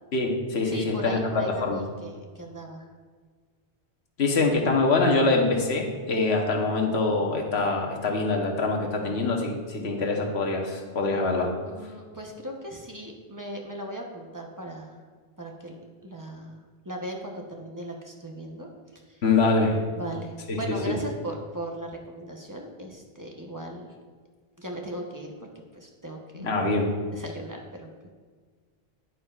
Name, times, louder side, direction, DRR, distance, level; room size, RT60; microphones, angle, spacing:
voice 1, 0.1-1.2 1.6-1.8 4.2-11.5 19.2-19.8 20.5-21.0 26.3-26.9, left 3 dB, 75° left, 1 dB, 1.4 m, -24 dB
voice 2, 0.6-2.9 11.7-15.0 15.4-15.8 16.0-16.6 16.8-19.2 19.9-23.9 24.6-26.5 27.1-28.1, right 1 dB, 20° right, 0 dB, 0.8 m, -38 dB
10.0 x 9.4 x 2.4 m, 1.5 s
omnidirectional pair, 1.1 m